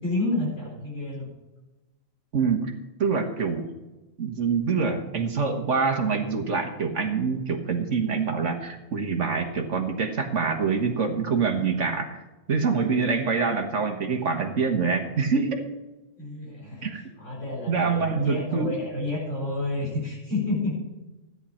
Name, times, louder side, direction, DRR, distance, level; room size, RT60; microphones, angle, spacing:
voice 1, 0.0-1.3 16.2-16.9 17.2-20.7, left 2 dB, 70° left, -5 dB, 4.6 m, -30 dB
voice 2, 2.3-2.7 3.0-3.7 4.2-12.2 12.5-15.6 16.8-17.0 17.7-18.8, right 5 dB, 65° right, 4 dB, 1.6 m, -25 dB
14.0 x 9.7 x 4.3 m, 1.1 s
omnidirectional pair, 1.3 m